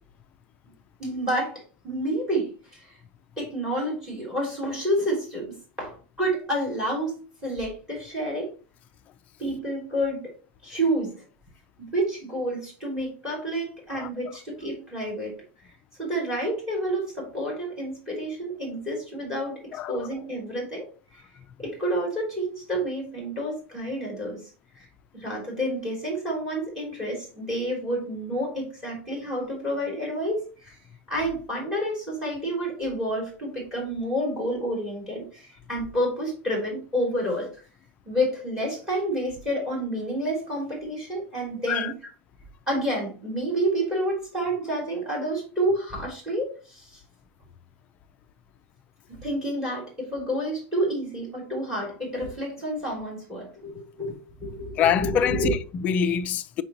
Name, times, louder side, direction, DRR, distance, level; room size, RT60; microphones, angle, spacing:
voice 1, 1.0-3.0 3.4-8.5 9.4-10.3 10.6-11.2 11.8-15.4 16.0-20.9 21.1-21.2 21.6-24.4 24.8-24.9 25.1-30.8 31.1-37.5 38.1-42.0 42.7-47.0 49.1-55.5, right 1 dB, 10° right, 3.5 m, -29 dB
voice 2, 19.8-20.1 41.7-41.9 54.8-56.6, left 8 dB, 20° left, 0.3 m, -25 dB
6.6 x 5.7 x 2.9 m
supercardioid pair, 175°, 7 cm